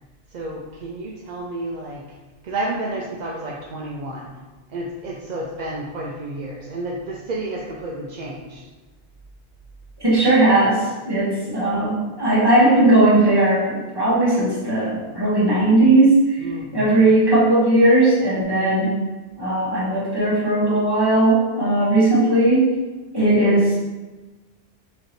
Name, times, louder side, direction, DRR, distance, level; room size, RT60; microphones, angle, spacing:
voice 1, 0.3-2.0 2.4-4.3 4.7-8.6 16.4-17.0, right 2 dB, 55° right, -3 dB, 0.5 m, -31 dB
voice 2, 10.0-16.4 16.7-18.9 19.4-22.8 23.1-23.8, right 2 dB, 20° right, -9 dB, 1.5 m, -17 dB
5.0 x 3.1 x 3.0 m, 1.2 s
omnidirectional pair, 1.2 m